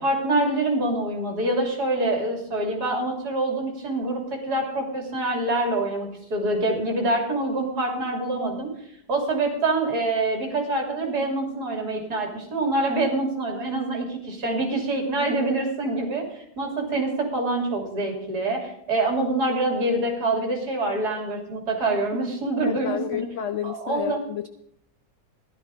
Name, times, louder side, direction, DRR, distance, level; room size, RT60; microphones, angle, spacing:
voice 1, 0.0-8.7 9.1-23.3 23.6-24.2, right 2 dB, 60° right, 1 dB, 3.4 m, -25 dB
voice 2, 22.6-24.5, left 9 dB, 70° left, 10 dB, 0.7 m, -30 dB
15.0 x 12.0 x 4.7 m, 0.73 s
omnidirectional pair, 2.0 m